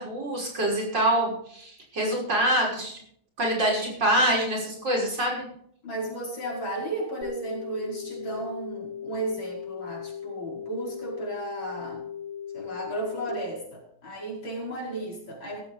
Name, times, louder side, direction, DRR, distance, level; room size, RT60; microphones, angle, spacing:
voice 1, 0.0-3.0 3.4-5.5, right 1 dB, 60° right, -2 dB, 6.5 m, -25 dB
voice 2, 5.8-12.0 12.5-15.6, right 2 dB, 75° left, -2 dB, 5.9 m, -34 dB
sound 1, 7.2-13.3, left 7 dB, 50° left, 6.5 m, -38 dB
16.5 x 15.0 x 3.5 m, 0.64 s
omnidirectional pair, 2.2 m